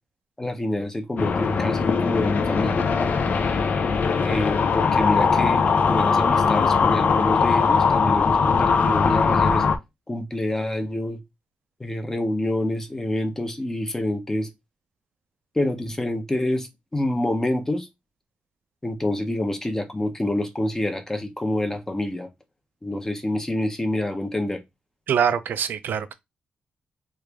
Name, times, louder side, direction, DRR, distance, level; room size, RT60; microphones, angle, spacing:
voice 1, 0.4-2.8 4.2-9.6 10.1-11.2 11.8-14.5 15.6-17.9 18.8-22.3 22.8-24.6, left 1 dB, 15° left, 0.6 m, -27 dB
sound 1, 1.2-9.8, left 5 dB, 55° left, 0.4 m, -20 dB
voice 2, 25.1-26.1, right 8 dB, 80° right, 0.4 m, -24 dB
3.1 x 2.4 x 3.4 m
wide cardioid pair, 120°, 3 cm